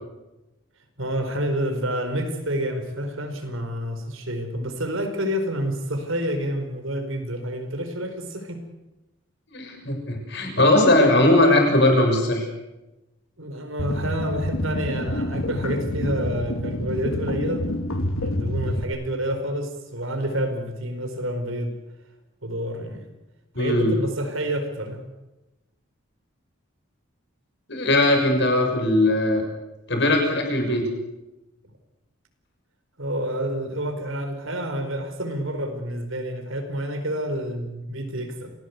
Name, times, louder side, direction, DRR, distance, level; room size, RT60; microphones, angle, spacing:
voice 1, 1.0-8.7 13.4-17.7 18.2-21.7 22.4-23.1 23.6-25.0 33.0-38.5, right 1 dB, 70° right, 7 dB, 4.9 m, -28 dB
voice 2, 9.5-12.5 23.6-23.9 27.7-29.4 29.9-30.8, left 1 dB, 55° left, 4 dB, 6.9 m, -19 dB
sound 1, 13.8-18.8, left 1 dB, 80° left, 2.3 m, -28 dB
28.5 x 18.5 x 8.3 m, 1.0 s
head